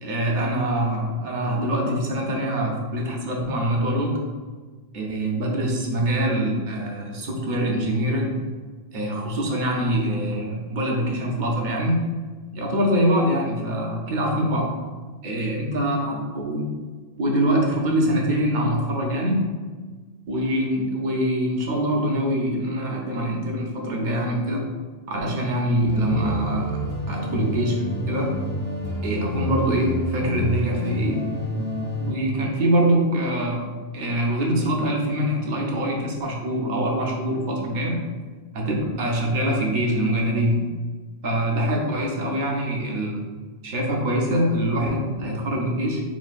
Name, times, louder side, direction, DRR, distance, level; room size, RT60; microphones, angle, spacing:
voice 1, 0.0-4.2 4.9-8.4 8.9-12.0 12.5-14.7 15.2-16.7 17.2-19.4 20.3-24.6 25.1-26.7 27.1-28.4 29.0-31.2 32.0-38.0 38.5-40.7 41.2-43.2 43.6-46.0, right 1 dB, 55° right, 0 dB, 0.6 m, -24 dB
sound 1, 25.9-32.1, equal, 50° left, 0.9 m, -29 dB
4.0 x 2.2 x 2.4 m, 1.4 s
omnidirectional pair, 1.2 m